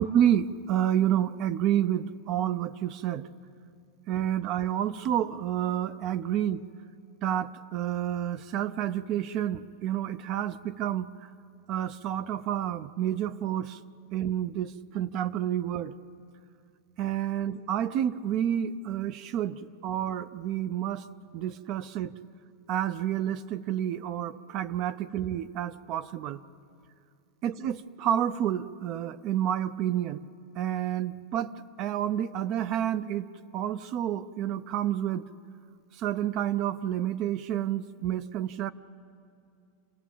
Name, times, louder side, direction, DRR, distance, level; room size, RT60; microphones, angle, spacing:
voice 1, 0.0-3.3 4.1-6.7 7.2-11.1 11.7-13.8 14.1-15.9 17.0-21.0 21.3-22.1 22.7-26.4 27.4-30.2 30.6-31.5 31.8-33.3 33.5-35.2 36.0-38.7, right 10 dB, 35° right, 14 dB, 0.5 m, -29 dB
27.5 x 16.5 x 7.4 m, 2.4 s
supercardioid pair, 160°, 0 cm